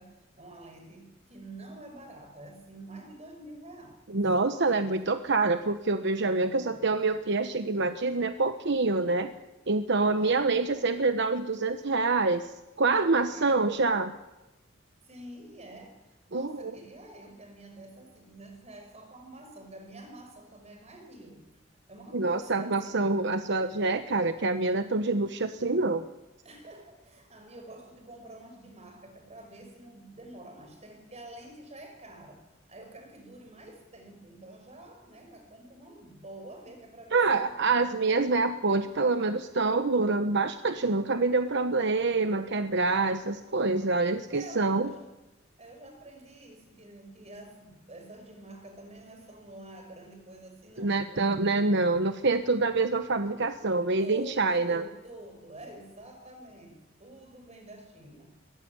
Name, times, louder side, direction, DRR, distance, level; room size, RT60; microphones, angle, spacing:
voice 1, 0.0-4.9 6.4-7.0 9.9-11.1 13.3-13.7 15.0-21.4 21.9-23.0 26.4-37.8 44.3-45.1 45.6-51.3 53.6-58.3, right 1 dB, 35° right, 5 dB, 5.6 m, -48 dB
voice 2, 4.1-9.3 9.7-12.5 12.8-14.1 16.3-16.8 22.1-26.0 37.1-44.9 50.8-54.8, right 3 dB, 65° right, 9 dB, 1.1 m, -26 dB
23.0 x 17.5 x 9.6 m, 1.0 s
head